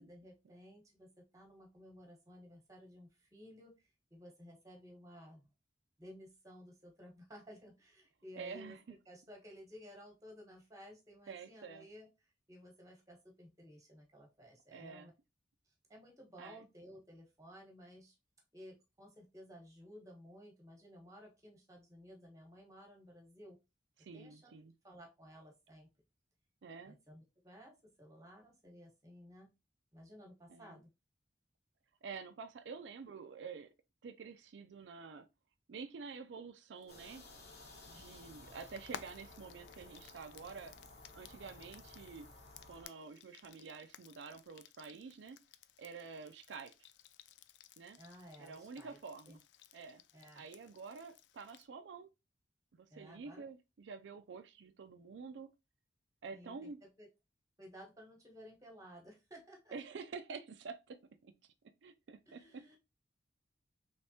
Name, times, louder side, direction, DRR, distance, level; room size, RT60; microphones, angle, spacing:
voice 1, 0.0-5.5 6.0-8.8 9.0-12.1 12.5-15.1 15.7-18.2 18.5-23.6 24.1-24.5 24.8-25.9 26.8-29.5 29.9-30.9 48.0-49.0 49.3-49.4 50.1-50.4 52.9-53.5 56.3-57.1 57.6-59.7 62.3-62.8, equal, 20° right, 1.1 m, -56 dB
voice 2, 8.4-9.0 11.3-11.9 14.7-15.1 16.4-16.7 24.0-24.7 26.6-26.9 30.5-30.8 32.0-33.7 34.0-35.3 35.7-37.2 37.9-40.7 41.1-42.3 42.7-45.4 45.8-46.9 47.8-48.0 48.4-49.4 49.7-50.0 50.3-52.1 52.7-55.5 56.2-56.8 59.7-61.3 61.8-62.8, right 5 dB, 90° right, 0.4 m, -49 dB
Frying (food), 36.8-51.7, left 9 dB, 80° left, 0.3 m, -58 dB
sound 1, 36.9-42.8, left 2 dB, 60° left, 1.1 m, -56 dB
3.4 x 3.2 x 2.7 m
head